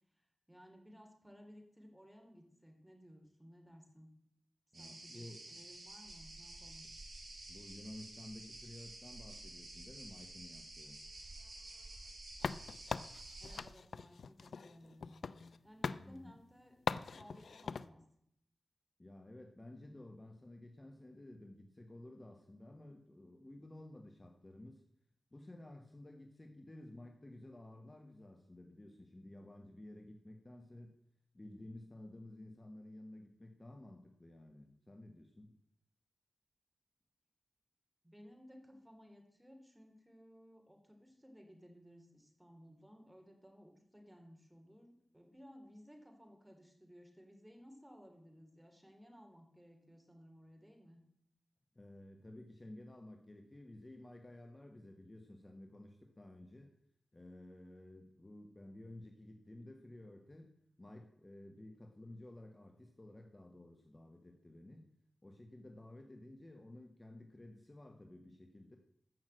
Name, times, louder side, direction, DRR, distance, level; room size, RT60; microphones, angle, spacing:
voice 1, 0.1-4.1 4.8-6.8 13.4-18.0 38.0-51.0, equal, 5° right, 3 dB, 3.1 m, -59 dB
voice 2, 4.7-5.4 7.5-11.0 16.0-16.4 19.0-24.8 25.3-31.0 31.3-35.6 51.7-56.7 57.1-60.5 60.8-64.9 65.2-68.8, left 1 dB, 25° left, 4 dB, 1.3 m, -53 dB
sound 1, 4.7-13.6, right 2 dB, 55° right, 6.0 m, -51 dB
sound 2, 12.4-15.6 15.8-16.0 16.9-17.9, left 5 dB, 80° left, 0.5 m, -41 dB
14.0 x 6.3 x 7.8 m, 0.73 s
wide cardioid pair, 90°, 0 cm